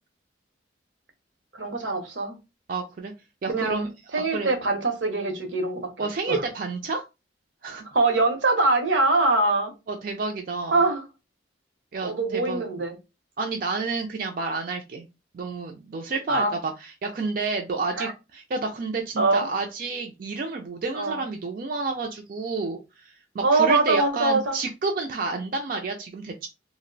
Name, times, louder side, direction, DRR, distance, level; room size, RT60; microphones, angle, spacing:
voice 1, 1.5-2.3 3.5-6.4 7.9-9.7 10.7-11.0 12.0-12.9 16.3-16.5 18.0-18.1 19.2-19.5 20.9-21.2 23.4-24.6, right 3 dB, 80° right, 0.8 m, -23 dB
voice 2, 2.7-3.1 3.4-4.5 6.0-7.0 7.6-7.8 9.9-10.8 11.9-12.6 13.4-15.1 15.3-26.5, right 3 dB, 50° right, 0.4 m, -30 dB
2.6 x 2.0 x 3.8 m
head